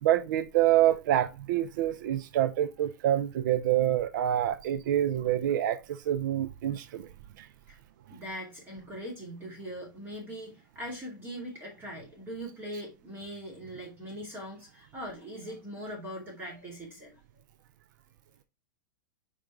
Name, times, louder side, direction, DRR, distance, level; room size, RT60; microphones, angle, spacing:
voice 1, 0.0-7.1 7.4-7.5, right 12 dB, 65° right, 0.5 m, -26 dB
voice 2, 8.1-17.2, equal, 20° right, 2.5 m, -41 dB
5.2 x 5.1 x 4.5 m
hypercardioid pair, 135°, 11 cm